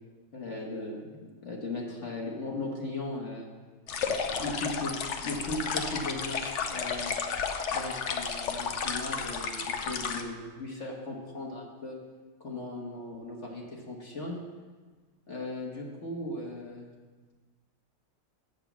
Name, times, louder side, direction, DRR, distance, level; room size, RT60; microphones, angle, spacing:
voice 1, 0.3-3.5 4.0-4.9 5.2-7.2 7.7-12.0 12.4-14.4 15.3-16.9, left 2 dB, 40° left, -1 dB, 1.5 m, -37 dB
sound 1, 3.9-10.2, left 6 dB, 65° left, 0.7 m, -32 dB
7.2 x 6.7 x 7.2 m, 1.4 s
omnidirectional pair, 2.0 m